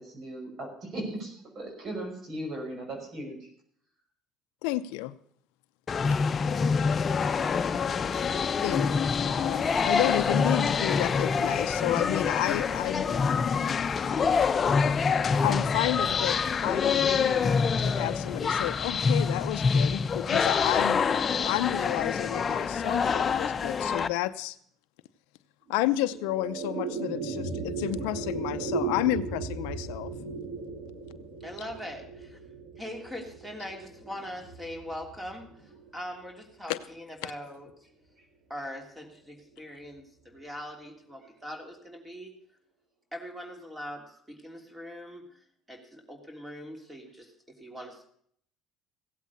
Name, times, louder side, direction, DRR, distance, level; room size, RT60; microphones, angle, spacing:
voice 1, 0.0-3.5 38.2-38.3, right 1 dB, 50° right, 1 dB, 5.7 m, -38 dB
voice 2, 4.6-5.2 8.6-9.0 9.4-13.3 15.4-16.4 16.6-21.0 21.4-24.6 25.7-30.1 36.7-36.8 37.2-37.3, left 15 dB, 80° left, 11 dB, 0.6 m, -31 dB
sound 1, 5.9-24.1, left 5 dB, 35° left, 0.8 m, -26 dB
sound 2, 25.7-36.2, right 4 dB, 70° right, 3.4 m, -37 dB
voice 3, 31.4-32.4 32.8-37.7 38.5-42.3 43.1-45.4 45.7-48.1, equal, 10° right, 3 dB, 3.1 m, -41 dB
16.0 x 8.2 x 6.9 m, 0.65 s
supercardioid pair, 75°, 0 cm